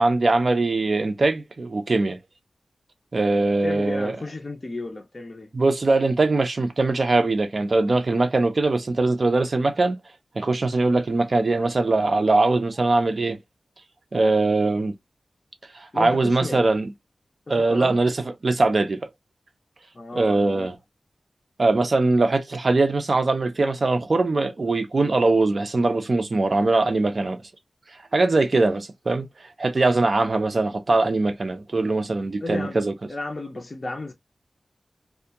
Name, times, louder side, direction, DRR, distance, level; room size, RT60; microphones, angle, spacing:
voice 1, 0.0-2.2 3.1-4.2 5.5-10.0 10.4-13.4 14.1-14.9 15.7-16.9 17.5-18.1 18.4-19.0 20.1-20.7 21.6-27.4 28.1-29.3 29.6-32.9, right 2 dB, 55° right, 0.6 m, -21 dB
voice 2, 3.6-5.5 15.9-16.6 17.5-18.0 19.9-20.7 32.4-32.8 33.1-34.1, left 2 dB, 40° left, 0.6 m, -33 dB
2.4 x 2.2 x 2.8 m
wide cardioid pair, 70°, 0 cm